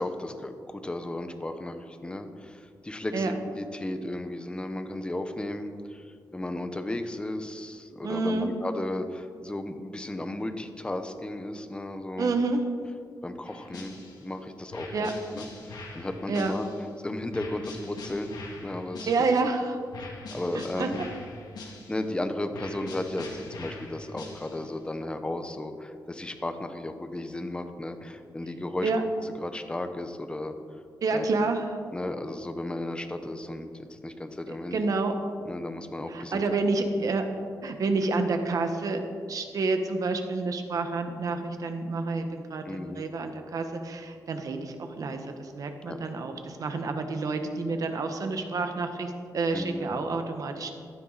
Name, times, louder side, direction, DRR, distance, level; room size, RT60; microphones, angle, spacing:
voice 1, 0.0-12.4 13.2-13.9 14.2-16.7 17.0-18.3 18.6-19.1 20.3-21.0 21.6-28.9 29.4-30.5 31.1-31.3 31.9-34.9 35.4-36.4 37.0-37.1 42.6-43.0 45.9-46.0 49.5-49.9, left 1 dB, 15° left, 7 dB, 1.0 m, -34 dB
voice 2, 8.0-8.5 12.2-12.6 14.9-15.1 16.3-16.5 19.1-19.8 20.5-21.1 28.8-29.0 31.0-31.7 34.7-35.1 36.1-37.2 37.6-39.0 39.3-50.7, right 3 dB, 60° right, 6 dB, 1.4 m, -29 dB
sound 1, 13.5-14.3 14.7-16.9 17.3-19.5 19.9-22.1 22.5-24.8, left 2 dB, 80° left, 2.4 m, -43 dB
15.5 x 12.0 x 4.2 m, 2.1 s
wide cardioid pair, 120°, 7 cm